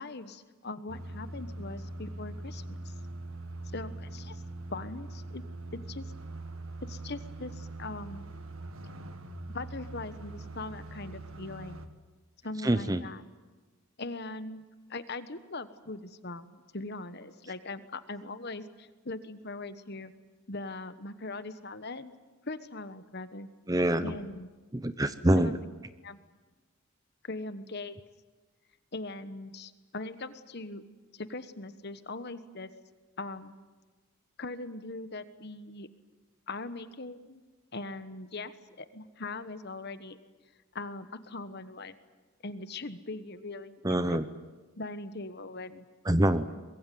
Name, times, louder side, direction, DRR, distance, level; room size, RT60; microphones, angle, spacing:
voice 1, 0.0-2.9 3.7-4.4 4.7-5.4 5.7-6.1 6.8-8.2 9.5-11.8 12.4-13.2 14.0-14.6 14.9-20.1 20.5-22.1 22.4-23.5 24.0-24.5 25.3-25.5 26.0-26.2 27.2-28.0 28.9-30.8 31.1-32.7 33.2-33.5 34.4-35.9 36.5-37.4 37.7-40.2 40.7-41.9 42.4-44.2 44.8-45.8, left 2 dB, 50° left, 12 dB, 1.2 m, -40 dB
sound 1, 0.9-11.9, right 2 dB, 70° right, 1.8 m, -42 dB
voice 2, 12.6-13.0 23.7-24.1 24.7-25.6 43.8-44.3 46.0-46.5, right 1 dB, 15° right, 13 dB, 0.7 m, -25 dB
24.0 x 22.0 x 9.3 m, 1.3 s
head